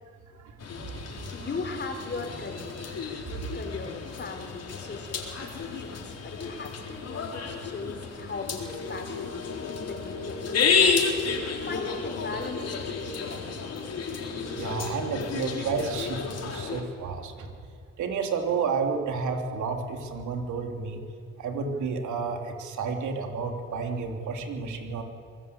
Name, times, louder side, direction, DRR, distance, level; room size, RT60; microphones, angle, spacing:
sound 1, 0.6-16.8, left 5 dB, 55° left, 4.1 m, -31 dB
voice 1, 1.3-2.8 3.5-11.1 11.6-13.7, left 3 dB, 35° left, 6 dB, 4.1 m, -38 dB
voice 2, 14.5-17.5 18.0-21.0 21.4-25.0, right 5 dB, 75° right, 3 dB, 3.3 m, -31 dB
24.5 x 19.5 x 8.4 m, 2.4 s
cardioid pair, 90°, 30 cm